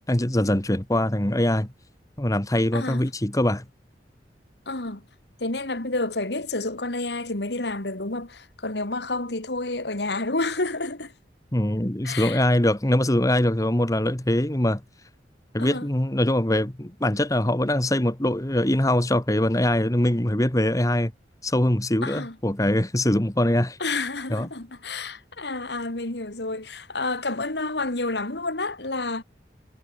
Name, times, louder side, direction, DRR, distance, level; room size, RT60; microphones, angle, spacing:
voice 1, 0.1-1.7 2.2-3.6 11.5-14.8 15.5-21.1 21.4-23.8 24.3-24.5, left 1 dB, 20° left, 1.5 m, -23 dB
voice 2, 2.7-3.0 4.7-5.0 5.4-11.1 12.0-12.4 15.6-15.9 22.0-22.4 23.8-29.2, left 2 dB, 70° left, 2.6 m, -29 dB
head